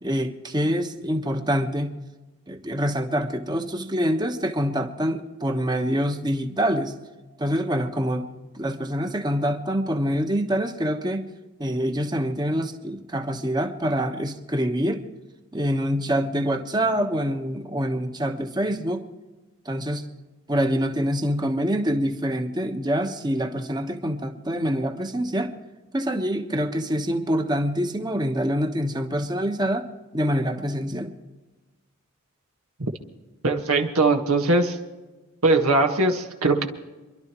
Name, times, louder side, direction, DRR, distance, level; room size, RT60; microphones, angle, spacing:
voice 1, 0.0-2.0 2.5-6.9 7.4-8.3 8.5-11.3 11.6-15.0 15.5-19.0 19.6-20.0 20.5-25.5 25.9-29.9 30.1-31.2, equal, 20° right, 5 dB, 1.2 m, -25 dB
voice 2, 33.4-34.8 35.4-36.7, right 2 dB, 80° right, 3 dB, 1.7 m, -20 dB
27.5 x 12.0 x 3.1 m, 1.2 s
head